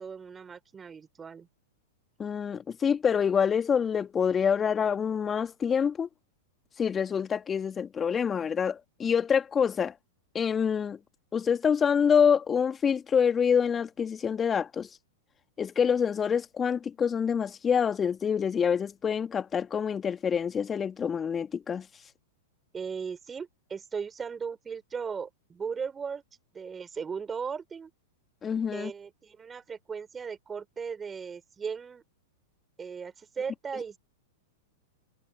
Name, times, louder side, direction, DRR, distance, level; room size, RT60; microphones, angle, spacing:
voice 1, 0.0-1.5 22.7-26.2 26.5-27.9 28.7-32.0 32.8-34.0, right 6 dB, 20° right, 4.8 m, -37 dB
voice 2, 2.2-6.1 6.8-10.0 10.3-11.0 11.3-14.9 15.6-21.9 28.4-28.9, left 7 dB, 20° left, 2.1 m, -26 dB
hypercardioid pair, 100°, 0 cm